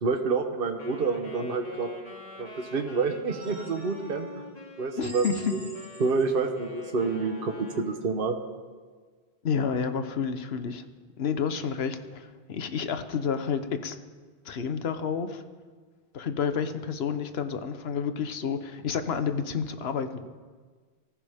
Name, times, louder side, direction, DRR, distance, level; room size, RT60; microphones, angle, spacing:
voice 1, 0.0-1.9 2.4-4.3 4.8-5.6 6.0-8.4, right 4 dB, 60° right, 5 dB, 1.2 m, -28 dB
Wind instrument woodwind instrument, 0.8-7.9, left 2 dB, 35° left, 2.6 m, -45 dB
sound 1, 3.4-4.2 5.0-6.5, right 1 dB, 20° right, 4.5 m, -46 dB
voice 2, 5.0-5.5 9.4-10.8 11.2-14.0 14.4-15.4 16.1-20.3, left 6 dB, 70° left, 9 dB, 1.2 m, -30 dB
23.5 x 15.0 x 3.6 m, 1.5 s
omnidirectional pair, 1.1 m